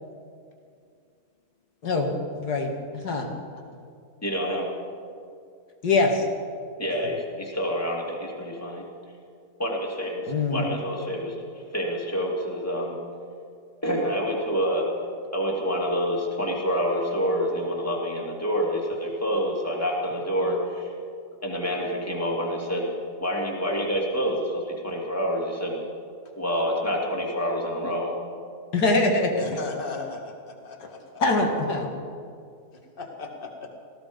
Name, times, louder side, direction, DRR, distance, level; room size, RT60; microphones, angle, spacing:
voice 1, 2.3-3.3 5.8-6.3 10.3-10.7 28.7-29.4 31.2-31.9, left 3 dB, 80° left, 1 dB, 2.3 m, -23 dB
voice 2, 4.2-4.7 6.8-8.9 9.6-13.0 13.8-14.9 15.3-20.9 21.4-22.9 23.2-25.8 26.4-28.2, equal, 10° left, -2 dB, 2.5 m, -27 dB
voice 3, 29.4-31.2 33.0-33.7, left 3 dB, 35° left, 1 dB, 2.1 m, -37 dB
18.5 x 15.0 x 5.2 m, 2.3 s
omnidirectional pair, 1.7 m